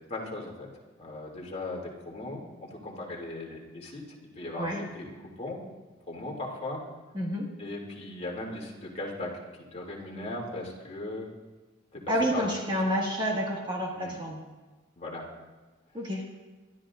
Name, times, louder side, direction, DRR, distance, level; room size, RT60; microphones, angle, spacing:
voice 1, 0.1-0.7 1.0-4.0 4.3-5.6 6.1-6.8 7.6-9.4 9.7-11.3 11.9-12.5 13.9-14.1 15.0-15.2, left 2 dB, 35° left, -2 dB, 2.8 m, -38 dB
voice 2, 7.1-7.5 12.1-14.4 15.9-16.2, equal, 25° right, -2 dB, 1.9 m, -29 dB
22.5 x 13.5 x 2.6 m, 1.3 s
head